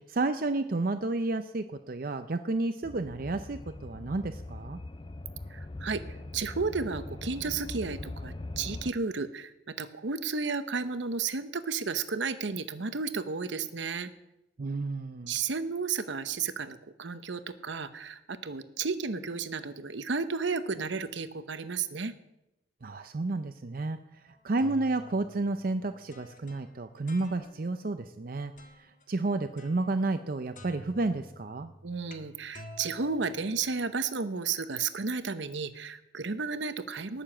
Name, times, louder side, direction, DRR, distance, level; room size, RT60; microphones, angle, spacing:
voice 1, 0.0-4.8 14.6-15.4 22.8-31.7, right 2 dB, 50° right, 9 dB, 0.5 m, -31 dB
sound 1, 2.8-8.9, left 2 dB, 25° left, 0.4 m, -41 dB
voice 2, 5.5-6.0 6.3-14.1 15.3-22.1 31.8-37.2, right 5 dB, 75° right, 12 dB, 0.8 m, -33 dB
sound 2, 24.3-27.8 28.6-29.0 29.6-30.3 30.5-34.0, equal, 45° left, 1.5 m, -51 dB
19.0 x 6.9 x 7.2 m, 0.93 s
head